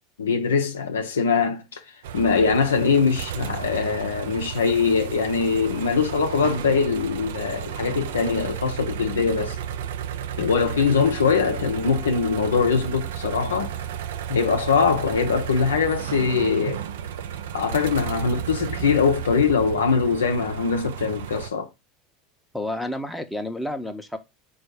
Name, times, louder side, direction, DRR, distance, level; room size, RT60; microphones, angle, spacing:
voice 1, 0.2-1.8 2.1-9.6 10.4-13.7 14.3-16.8 17.5-21.7, left 5 dB, 85° left, 0.5 m, -22 dB
sound 1, 2.0-21.5, right 9 dB, 75° right, 0.3 m, -33 dB
voice 2, 22.5-24.2, left 1 dB, 5° left, 0.7 m, -30 dB
4.1 x 2.4 x 4.6 m
hypercardioid pair, 80°, 0 cm